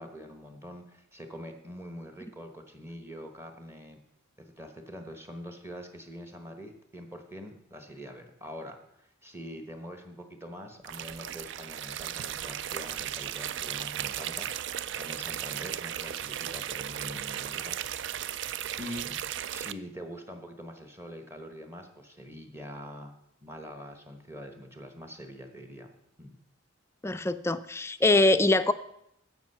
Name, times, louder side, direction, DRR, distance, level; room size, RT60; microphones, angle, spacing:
voice 1, 0.0-4.0 4.4-17.7 18.8-19.2 19.5-25.9 26.2-26.3, equal, 10° right, 5 dB, 1.1 m, -44 dB
sound 1, 10.8-19.7, right 10 dB, 60° right, 0.4 m, -36 dB
voice 2, 27.0-28.7, left 2 dB, 15° left, 11 dB, 0.4 m, -23 dB
14.5 x 5.4 x 5.6 m, 0.77 s
head